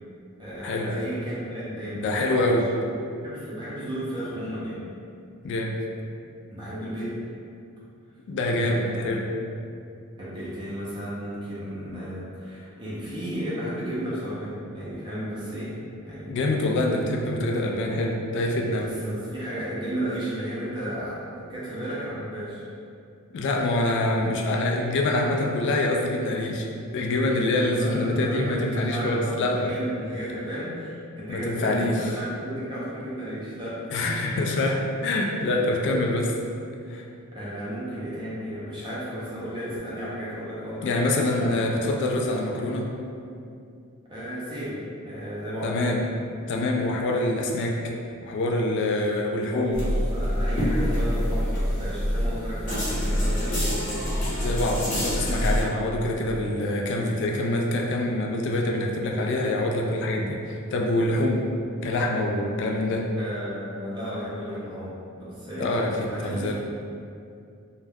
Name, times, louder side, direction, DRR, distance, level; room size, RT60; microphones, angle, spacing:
voice 1, 0.4-2.6 3.2-4.8 6.5-7.2 8.6-9.2 10.2-15.8 16.0-16.5 17.2-17.4 18.9-22.6 27.6-34.2 37.3-41.6 44.1-45.7 49.5-53.8 63.1-64.9 65.2-66.5, equal, 20° right, -9 dB, 0.5 m, -34 dB
voice 2, 2.0-2.7 5.4-5.8 8.3-9.3 16.3-18.9 23.3-26.7 26.9-29.7 31.3-32.1 33.9-36.4 36.9-37.0 40.8-42.9 45.6-46.1 46.5-47.9 48.2-49.8 54.4-61.5 61.8-63.1 65.6-66.5, left 1 dB, 55° left, 0 dB, 0.3 m, -25 dB
sound 1, 49.7-55.6, equal, 40° left, 0.7 m, -25 dB
2.3 x 2.1 x 3.2 m, 2.4 s
head